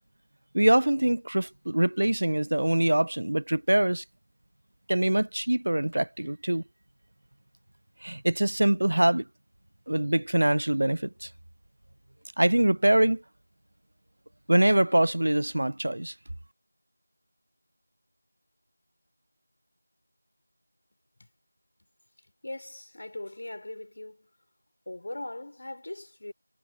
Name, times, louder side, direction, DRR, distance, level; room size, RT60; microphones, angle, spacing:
voice 1, 0.5-4.0 4.9-6.6 8.0-9.2 9.9-11.3 12.4-13.2 14.5-16.1, right 1 dB, 65° right, 0.5 m, -24 dB
voice 2, 22.4-24.3 24.9-26.3, left 1 dB, 55° left, 4.7 m, -40 dB
figure-of-eight pair, 175°, 0 cm